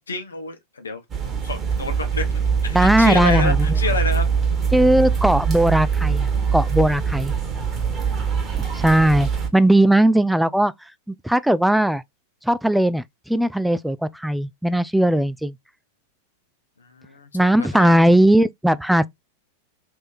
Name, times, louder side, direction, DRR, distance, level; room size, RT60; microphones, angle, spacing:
voice 1, 0.0-2.3 2.6-4.3 8.1-8.6 16.8-18.0, left 4 dB, 85° left, 0.9 m, -29 dB
sound 1, 1.1-9.5, right 6 dB, 25° right, 1.5 m, -23 dB
voice 2, 2.7-3.7 4.7-7.3 8.6-10.7 11.1-12.0 12.4-15.5 17.3-19.1, right 1 dB, ahead, 0.3 m, -18 dB
3.5 x 3.2 x 2.6 m
hypercardioid pair, 100°, 0 cm